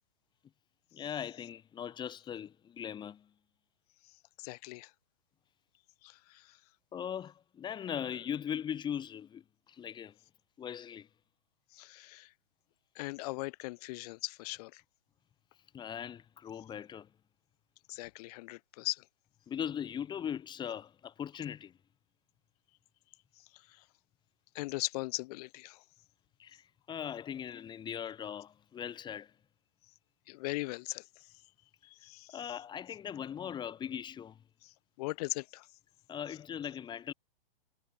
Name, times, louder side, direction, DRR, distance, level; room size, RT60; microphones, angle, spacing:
voice 1, 0.9-3.3 6.9-10.1 10.6-11.1 15.7-17.1 19.5-21.7 26.4-29.3 32.3-34.4 36.1-37.1, left 9 dB, 15° left, 1.7 m, -39 dB
voice 2, 4.4-4.9 6.0-6.6 11.7-12.3 12.9-14.8 17.9-19.0 23.4-23.8 24.5-25.8 30.3-31.3 31.8-32.5 34.6-35.7, left 22 dB, 40° left, 2.4 m, -40 dB
hypercardioid pair, 135°, 29 cm